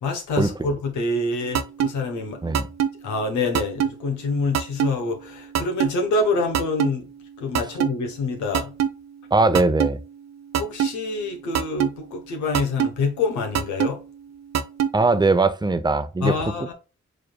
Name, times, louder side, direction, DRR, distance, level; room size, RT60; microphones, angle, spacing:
voice 1, 0.0-2.4 3.0-7.1 7.4-8.7 10.6-14.0 16.2-16.7, left 3 dB, 90° left, 1.0 m, -26 dB
sound 1, 1.5-1.9 2.5-2.9 3.5-3.9 4.5-4.9 5.5-5.9 6.5-6.9 7.5-7.9 8.5-8.9 9.5-9.9 10.5-10.9 11.5-11.9 12.5-12.9 13.5-13.9 14.5-14.9, right 9 dB, 65° right, 0.6 m, -21 dB
voice 2, 9.3-10.0 14.9-16.3, right 3 dB, 15° right, 0.6 m, -20 dB
4.9 x 3.2 x 2.2 m
supercardioid pair, 40°, 29 cm